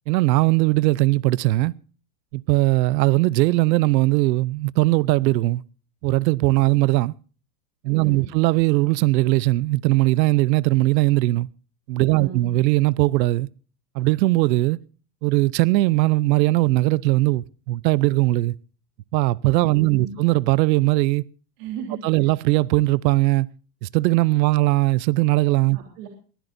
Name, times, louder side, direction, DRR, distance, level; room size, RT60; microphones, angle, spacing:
voice 1, 0.1-1.7 2.3-5.6 6.0-7.1 7.8-11.5 11.9-13.5 13.9-14.8 15.2-18.5 19.1-21.2 22.0-23.5 23.8-25.8, right 19 dB, 80° right, 0.8 m, -19 dB
voice 2, 7.9-8.3 12.1-12.5 19.7-20.2 21.6-22.3 25.7-26.1, right 7 dB, 65° right, 3.6 m, -35 dB
23.0 x 15.0 x 2.6 m
supercardioid pair, 155°, 50 cm